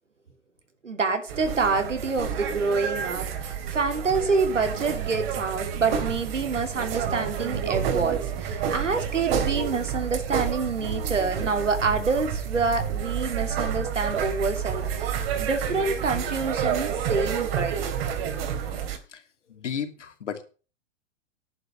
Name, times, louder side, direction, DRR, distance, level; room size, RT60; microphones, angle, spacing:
voice 1, 0.8-17.9, right 4 dB, 85° right, 7 dB, 3.1 m, -27 dB
sound 1, 1.3-19.0, right 8 dB, 55° right, 3.3 m, -29 dB
voice 2, 19.5-20.4, left 7 dB, 75° left, 8 dB, 2.8 m, -33 dB
11.0 x 9.7 x 6.5 m, 0.35 s
hypercardioid pair, 110°, 36 cm